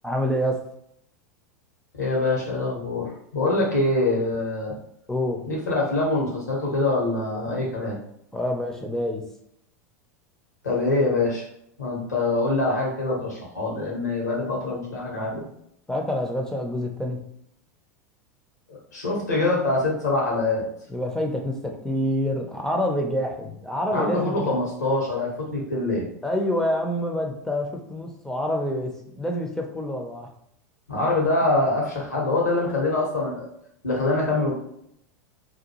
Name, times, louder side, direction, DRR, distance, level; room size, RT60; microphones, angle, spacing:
voice 1, 0.0-0.6 5.1-5.4 8.3-9.2 15.9-17.2 20.9-24.6 26.2-30.3, equal, 5° left, 2 dB, 0.5 m, -27 dB
voice 2, 1.9-4.7 5.4-8.0 10.6-11.4 11.8-15.4 18.7-20.6 23.9-26.1 30.9-33.5 33.8-34.5, left 2 dB, 90° left, -3 dB, 1.2 m, -24 dB
2.6 x 2.2 x 2.9 m, 0.72 s
hypercardioid pair, 90°, 9 cm